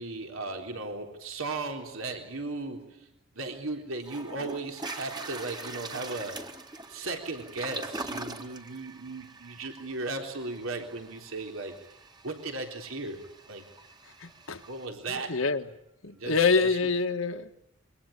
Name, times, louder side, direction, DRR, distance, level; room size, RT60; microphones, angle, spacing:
voice 1, 0.0-3.1 3.4-6.5 6.9-11.8 12.2-13.6 14.7-15.4 16.1-16.8, right 3 dB, 75° right, 4 dB, 3.6 m, -36 dB
Toilet flush, 3.5-3.6 4.0-14.9, right 2 dB, 20° right, 1.9 m, -43 dB
voice 2, 14.2-14.6 15.1-15.7 16.0-17.5, left 4 dB, 70° left, 8 dB, 1.9 m, -26 dB
27.0 x 23.0 x 8.7 m, 0.78 s
head